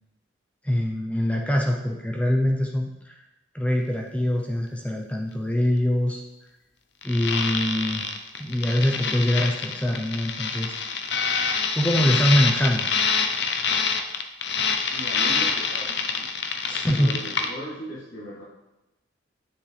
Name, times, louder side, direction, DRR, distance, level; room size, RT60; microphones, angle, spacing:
voice 1, 0.6-3.1 3.5-6.2 7.0-8.1 8.4-10.7 11.7-12.9 16.7-17.1, equal, 5° left, 0 dB, 0.8 m, -23 dB
sound 1, 7.0-17.5, left 5 dB, 65° left, 0.8 m, -26 dB
voice 2, 14.9-16.3 16.8-18.4, equal, 80° left, -10 dB, 3.2 m, -37 dB
9.6 x 8.5 x 3.4 m, 0.98 s
head